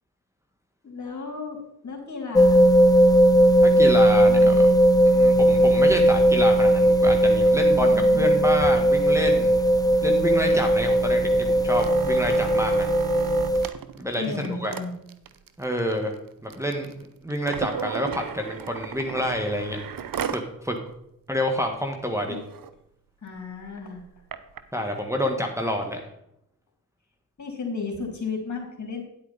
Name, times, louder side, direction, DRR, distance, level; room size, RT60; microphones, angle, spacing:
voice 1, 0.8-2.7 4.3-4.8 7.9-8.4 14.2-14.9 22.3-22.4 23.2-24.0 27.4-29.0, left 4 dB, 50° left, 2 dB, 3.1 m, -34 dB
sound 1, 2.3-13.7, right 1 dB, 10° left, 0.3 m, -18 dB
voice 2, 3.6-4.5 5.0-9.5 10.0-12.9 14.0-14.7 15.6-16.1 16.4-19.8 20.3-20.8 21.3-22.4 24.7-26.0, equal, 10° right, 2 dB, 1.7 m, -28 dB
sound 2, 11.7-20.5 20.9-21.0 21.3-21.6 22.1-22.2 22.4-22.7 23.4-24.6 25.3-25.4, right 7 dB, 60° right, 0.8 m, -35 dB
9.6 x 8.6 x 4.2 m, 0.76 s
supercardioid pair, 40°, 38 cm